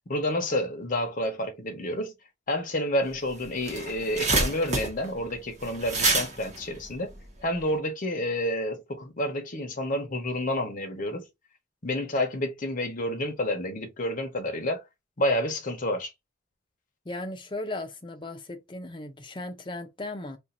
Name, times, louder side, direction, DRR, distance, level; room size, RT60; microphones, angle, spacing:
voice 1, 0.1-2.1 2.5-7.1 7.4-11.3 11.8-14.8 15.2-16.1, left 1 dB, 45° left, 0.9 m, -29 dB
sound 1, 3.1-3.2 3.4-7.7, right 3 dB, 35° right, 1.0 m, -28 dB
voice 2, 17.0-20.4, left 2 dB, 25° left, 0.6 m, -36 dB
2.5 x 2.5 x 4.1 m
head